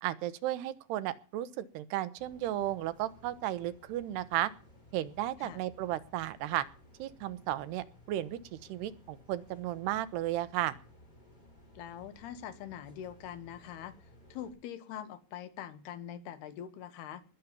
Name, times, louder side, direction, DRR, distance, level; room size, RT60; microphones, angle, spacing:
voice 1, 0.0-4.5 4.9-6.7 7.0-10.7, right 13 dB, 75° right, 14 dB, 2.9 m, -34 dB
sound 1, 2.2-14.5, left 1 dB, 10° left, 4.3 m, -58 dB
voice 2, 11.8-13.9 14.3-17.2, left 10 dB, 70° left, 13 dB, 3.0 m, -43 dB
20.5 x 7.5 x 7.2 m, 0.39 s
omnidirectional pair, 5.3 m